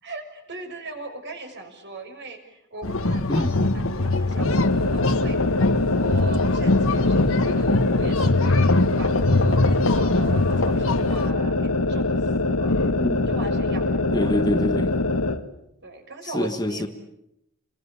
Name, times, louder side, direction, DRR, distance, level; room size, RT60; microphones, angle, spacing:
voice 1, 0.0-5.6 5.9-12.7 13.3-14.3 15.8-16.9, right 2 dB, 50° right, 5 dB, 6.0 m, -39 dB
sound 1, 2.8-11.3, left 2 dB, 65° left, 1.6 m, -23 dB
sound 2, 4.4-15.4, left 2 dB, 80° left, 1.6 m, -23 dB
voice 2, 12.9-13.3 14.1-14.9 16.3-16.9, left 1 dB, 20° left, 8 dB, 1.4 m, -25 dB
29.5 x 22.5 x 8.6 m, 0.82 s
head